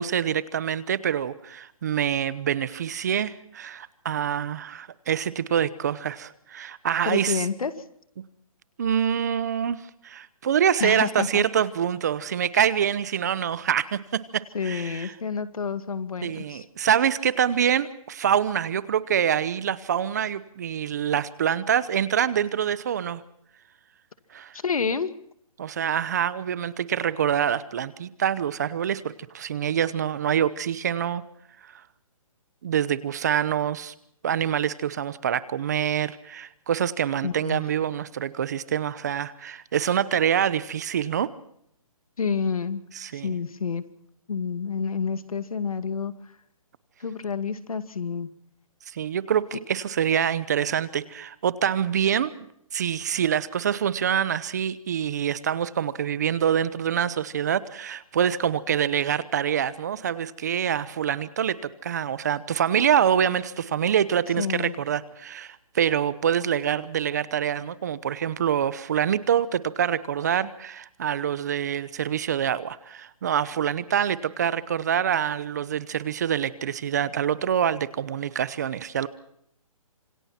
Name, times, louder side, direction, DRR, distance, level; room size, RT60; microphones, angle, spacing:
voice 1, 0.0-7.4 8.8-15.1 16.2-23.2 24.3-24.6 25.6-31.2 31.7-31.8 32.6-33.9 34.2-41.3 43.0-43.3 48.9-52.3 52.7-79.1, right 9 dB, 30° right, 18 dB, 0.8 m, -25 dB
voice 2, 7.0-7.7 10.8-11.4 14.5-16.6 24.5-25.1 37.2-37.6 42.2-42.8 43.1-43.8 44.3-46.1 47.0-48.3 64.4-64.7, left 5 dB, 75° left, 11 dB, 2.4 m, -29 dB
27.0 x 24.5 x 4.4 m, 0.69 s
hypercardioid pair, 170°, 18 cm